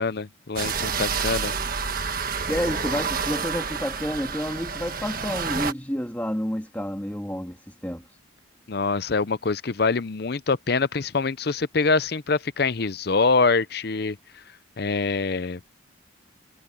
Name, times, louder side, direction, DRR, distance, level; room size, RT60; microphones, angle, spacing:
voice 1, 0.0-1.5 8.7-14.2 14.8-15.6, left 4 dB, 50° left, 0.6 m, -24 dB
sound 1, 0.6-5.7, right 5 dB, 45° right, 1.5 m, -29 dB
voice 2, 2.5-8.2, equal, 10° left, 2.4 m, -30 dB
head